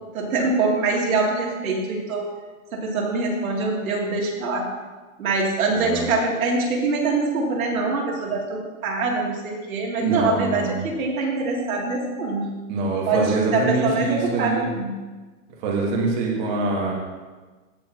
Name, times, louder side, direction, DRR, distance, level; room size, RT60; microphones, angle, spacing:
voice 1, 0.1-2.3 2.7-4.7 5.2-12.5 13.1-13.2 13.5-15.0, right 3 dB, 90° right, -3 dB, 2.8 m, -24 dB
voice 2, 5.7-6.1 10.0-10.8 12.7-14.7 15.6-16.9, right 3 dB, 35° right, -2 dB, 1.6 m, -24 dB
16.5 x 6.9 x 2.9 m, 1.3 s
supercardioid pair, 170°, 41 cm